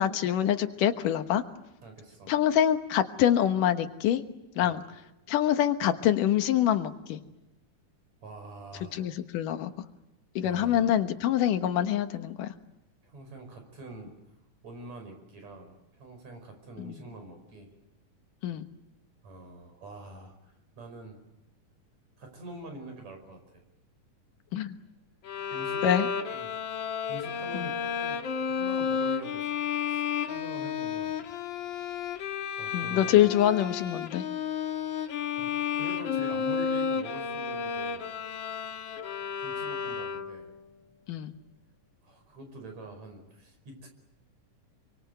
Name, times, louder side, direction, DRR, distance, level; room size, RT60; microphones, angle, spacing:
voice 1, 0.0-1.4 2.3-4.2 4.6-4.8 5.3-7.2 8.9-9.7 10.4-12.5 16.8-17.0 18.4-18.7 24.5-24.8 25.8-26.1 27.5-27.7 32.7-34.3 41.1-41.3, left 10 dB, 85° left, 8 dB, 2.9 m, -25 dB
voice 2, 1.8-2.3 4.6-4.8 8.2-9.0 10.4-10.9 13.0-14.1 14.6-17.7 19.2-21.2 22.2-23.6 25.5-26.0 26.2-26.5 27.1-28.2 28.5-29.5 29.9-31.2 32.6-33.2 35.4-38.0 39.4-40.5 42.0-43.9, right 2 dB, 60° right, 5 dB, 6.4 m, -45 dB
Bowed string instrument, 25.2-40.5, left 7 dB, 55° left, 1.5 m, -32 dB
27.5 x 24.0 x 8.0 m, 0.92 s
omnidirectional pair, 3.7 m